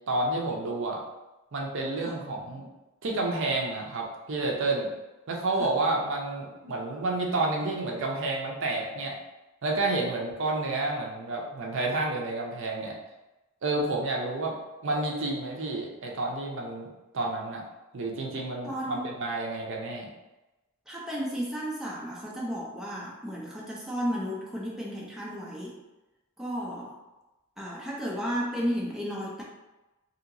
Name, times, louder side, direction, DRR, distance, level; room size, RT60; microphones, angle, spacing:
voice 1, 0.1-1.0 1.5-2.7 3.0-4.9 5.3-9.1 9.6-12.9 13.6-14.5 14.8-16.9 17.1-17.6 17.9-20.1, right 2 dB, 60° right, -1 dB, 0.5 m, -30 dB
voice 2, 18.6-19.1 20.9-25.7 26.4-27.0 27.6-29.4, equal, ahead, -5 dB, 0.5 m, -33 dB
2.8 x 2.7 x 2.6 m, 1.0 s
head